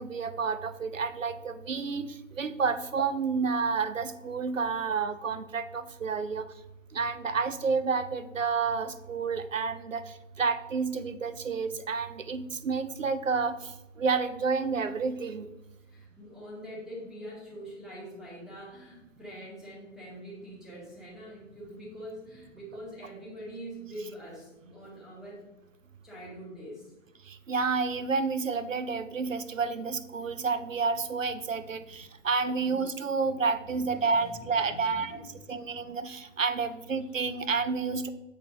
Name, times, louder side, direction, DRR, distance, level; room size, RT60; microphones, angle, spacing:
voice 1, 0.0-6.5 6.9-13.7 14.0-15.5 27.3-35.2 35.5-38.1, right 5 dB, 85° right, 13 dB, 0.6 m, -30 dB
voice 2, 15.9-25.4 26.0-26.9 31.8-31.9 32.5-32.8 33.6-35.7, equal, ahead, -7 dB, 2.0 m, -44 dB
8.2 x 4.3 x 2.7 m, 0.98 s
figure-of-eight pair, 115°, 38 cm